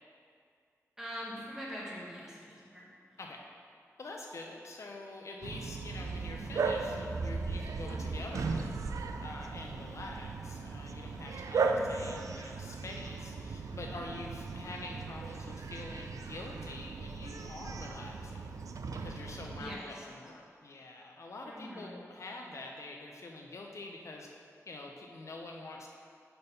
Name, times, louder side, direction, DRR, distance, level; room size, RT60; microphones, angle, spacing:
voice 1, 1.0-3.2 11.6-12.2 19.6-20.1 21.4-22.0, equal, 10° right, -6 dB, 1.4 m, -44 dB
voice 2, 4.0-8.8 9.2-18.5 19.0-24.3 24.7-25.9, left 2 dB, 60° left, 0 dB, 0.5 m, -46 dB
Bark, 5.4-19.8, right 4 dB, 80° right, 0.4 m, -37 dB
5.2 x 4.3 x 5.4 m, 2.3 s
wide cardioid pair, 110°, 6 cm